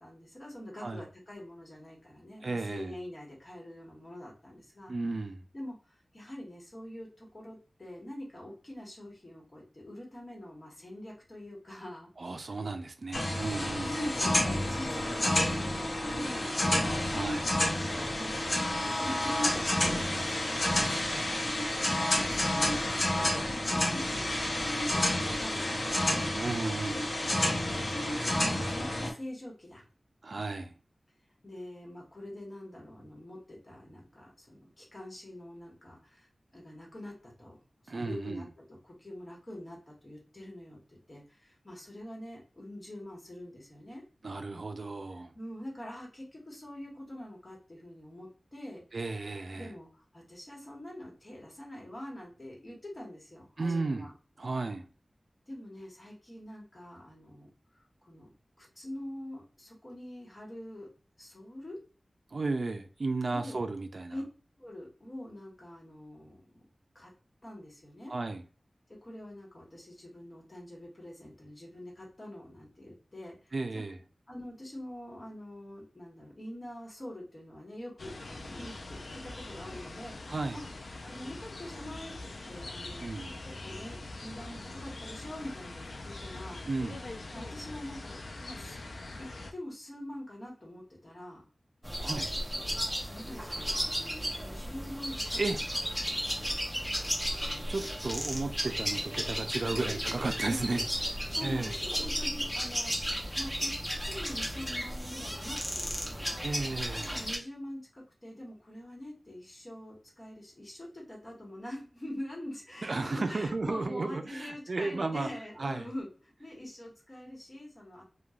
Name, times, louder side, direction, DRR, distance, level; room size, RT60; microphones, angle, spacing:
voice 1, 0.0-4.9 5.5-12.1 12.4-12.6 13.4-13.6 13.9-17.1 18.1-21.4 22.1-22.7 23.1-26.8 28.0-29.8 31.4-37.6 37.9-44.0 45.3-48.8 49.5-54.1 55.5-60.9 61.2-61.8 63.3-63.6 64.1-64.2 64.6-66.6 66.9-67.1 67.4-68.1 68.9-73.8 74.3-80.2 80.5-80.6 81.0-86.6 87.3-88.8 89.2-91.5 93.0-96.2 99.6-99.9 100.4-100.8 101.3-103.7 104.0-106.5 107.1-118.0, left 1 dB, 35° left, 1.1 m, -45 dB
voice 2, 2.4-2.9 4.9-5.4 12.2-13.9 17.1-17.5 26.3-27.0 30.2-30.7 37.9-38.5 44.2-45.3 48.9-49.7 53.6-54.1 54.4-54.9 62.3-64.1 68.1-68.4 73.5-74.0 80.3-80.6 83.0-83.4 86.6-87.0 92.0-92.3 95.4-95.6 97.7-100.8 101.4-101.7 106.4-107.1 112.8-115.3 115.6-115.9, right 3 dB, 65° right, 0.3 m, -34 dB
sound 1, 13.1-29.1, left 1 dB, 60° left, 0.8 m, -29 dB
sound 2, 78.0-89.5, left 2 dB, 80° left, 0.4 m, -43 dB
sound 3, 91.8-107.4, equal, 5° left, 0.7 m, -34 dB
3.1 x 2.2 x 2.3 m
wide cardioid pair, 85°, 0 cm